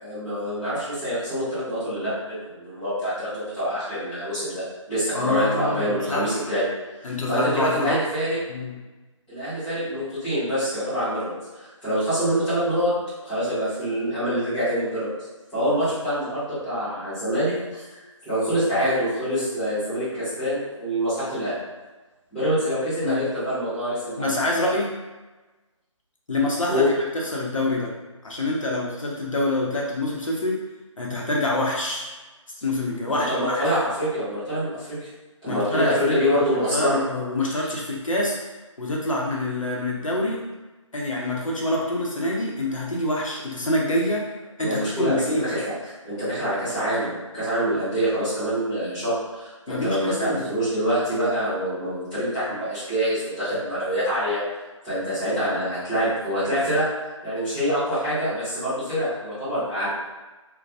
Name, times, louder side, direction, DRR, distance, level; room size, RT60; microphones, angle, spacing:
voice 1, 0.0-6.6 7.3-8.4 9.3-12.9 13.2-15.1 15.5-17.8 18.2-21.5 22.3-24.4 26.7-26.9 33.1-35.1 35.4-36.9 44.6-45.7 46.0-54.4 54.8-56.8 57.2-59.9, equal, ahead, -20 dB, 0.5 m, -25 dB
voice 2, 5.1-6.3 7.0-8.0 8.5-8.8 23.0-23.2 24.2-24.9 26.3-26.8 27.1-27.9 28.2-30.6 31.0-32.1 32.6-33.6 35.5-36.2 36.7-38.4 38.8-40.4 40.9-44.3 44.6-45.5 49.7-50.5, left 1 dB, 80° left, -3 dB, 0.7 m, -26 dB
2.2 x 2.1 x 2.6 m, 1.2 s
figure-of-eight pair, 160°, 17 cm